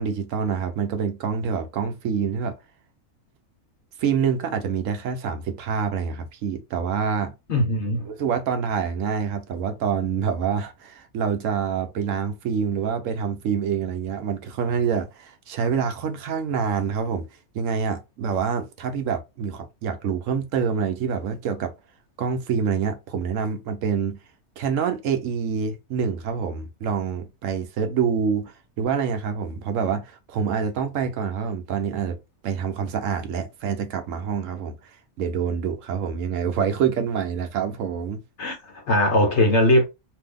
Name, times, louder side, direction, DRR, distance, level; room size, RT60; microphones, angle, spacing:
voice 1, 0.0-2.5 4.0-7.3 8.1-17.2 17.5-21.7 22.2-24.2 24.6-32.2 32.4-34.8 35.2-38.2, right 6 dB, 70° right, 1.0 m, -26 dB
voice 2, 7.5-8.1 38.4-39.8, left 1 dB, 60° left, 1.3 m, -20 dB
2.6 x 2.6 x 3.6 m
omnidirectional pair, 1.4 m